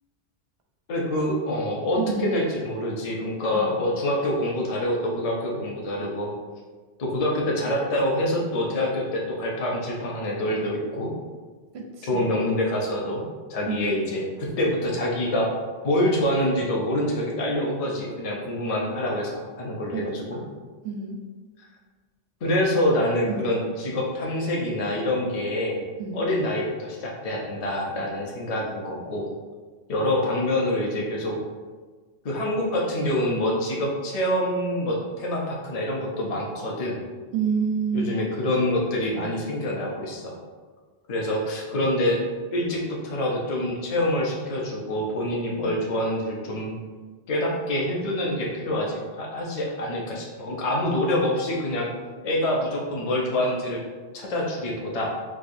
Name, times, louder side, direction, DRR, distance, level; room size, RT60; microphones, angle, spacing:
voice 1, 0.9-6.3 7.0-11.1 12.1-13.2 13.5-15.5 15.8-20.4 22.4-25.8 26.1-29.3 29.9-31.4 32.2-37.0 37.9-40.4 41.1-42.2 42.5-46.8 47.3-51.9 52.2-53.8 54.1-55.1, left 1 dB, 45° left, -2 dB, 0.6 m, -26 dB
voice 2, 2.0-2.3 3.5-3.7 11.7-12.3 13.7-13.8 19.9-20.0 20.3-20.6 20.8-21.2 22.4-22.6 23.3-23.5 26.0-26.3 37.3-38.2, right 6 dB, 90° right, 1 dB, 0.9 m, -28 dB
4.7 x 2.3 x 2.5 m, 1.4 s
omnidirectional pair, 1.0 m